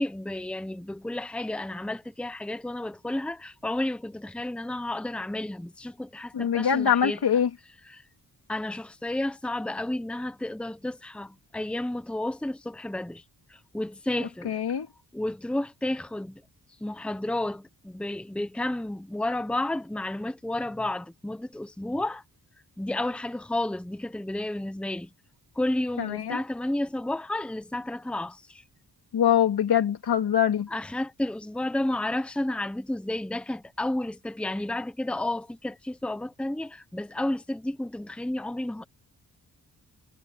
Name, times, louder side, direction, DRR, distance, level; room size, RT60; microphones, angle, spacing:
voice 1, 0.0-7.4 7.8-8.0 8.5-13.2 13.5-14.6 15.1-16.4 16.8-22.2 22.8-25.1 25.5-28.6 30.7-38.8, left 1 dB, 5° left, 0.9 m, -31 dB
voice 2, 6.3-7.5 14.4-14.9 26.0-26.4 29.1-30.7, left 9 dB, 75° left, 2.7 m, -23 dB
wide cardioid pair, 170°, 39 cm